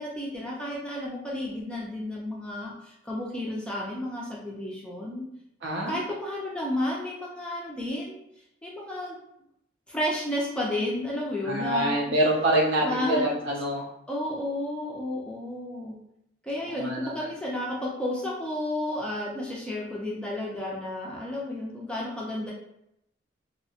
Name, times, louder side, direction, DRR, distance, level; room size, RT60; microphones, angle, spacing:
voice 1, 0.0-5.3 5.9-8.2 8.6-9.2 9.9-12.1 12.8-13.3 14.1-16.0 16.4-22.5, left 1 dB, 5° left, -4 dB, 0.4 m, -32 dB
voice 2, 5.6-6.0 11.4-13.8 16.6-17.3, right 1 dB, 65° right, -2 dB, 0.5 m, -26 dB
2.7 x 2.1 x 2.7 m, 0.79 s
head